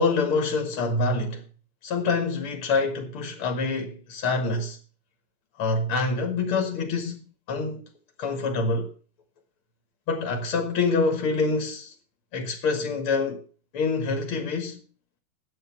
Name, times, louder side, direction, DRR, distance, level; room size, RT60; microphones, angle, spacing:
voice 1, 0.0-1.4 1.8-4.8 5.6-7.8 8.2-8.9 10.1-11.9 12.3-13.4 13.7-14.8, left 3 dB, 80° left, 2.5 m, -26 dB
9.1 x 8.5 x 5.9 m
omnidirectional pair, 2.3 m